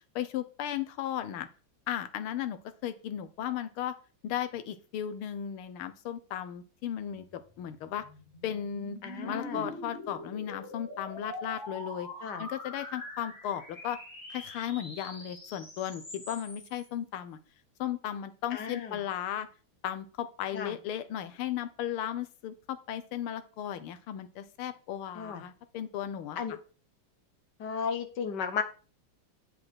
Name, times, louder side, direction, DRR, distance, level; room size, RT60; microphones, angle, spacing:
voice 1, 0.1-1.5 1.9-3.9 4.2-8.1 8.4-12.1 12.4-14.0 14.3-17.4 17.8-19.5 19.8-26.6, left 10 dB, 90° left, 11 dB, 1.7 m, -35 dB
sound 1, 7.1-16.9, left 1 dB, 35° left, 2.9 m, -44 dB
voice 2, 9.0-9.7 12.2-12.4 18.5-19.0 20.5-20.7 25.1-25.4 26.4-26.6 27.6-28.6, left 6 dB, 60° left, 8 dB, 1.6 m, -34 dB
8.1 x 5.2 x 6.2 m, 0.37 s
omnidirectional pair, 2.3 m